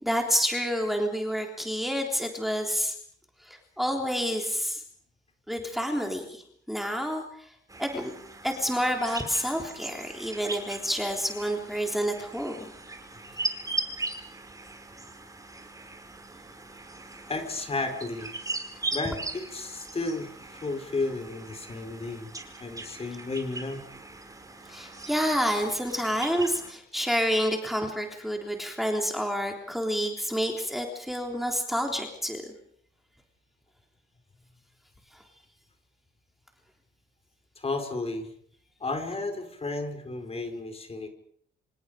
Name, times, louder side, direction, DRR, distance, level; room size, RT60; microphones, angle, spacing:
voice 1, 0.0-2.9 3.4-4.8 5.5-6.4 6.7-7.2 7.8-8.1 8.4-12.5 24.7-32.4, equal, ahead, 2 dB, 3.5 m, -28 dB
sound 1, 7.7-26.7, right 2 dB, 15° right, 5.1 m, -39 dB
voice 2, 17.3-18.3 18.9-22.3 22.6-23.8 37.6-38.3 38.8-41.1, left 3 dB, 30° left, 6 dB, 4.7 m, -33 dB
27.0 x 26.5 x 5.2 m, 0.64 s
cardioid pair, 90°, 20 cm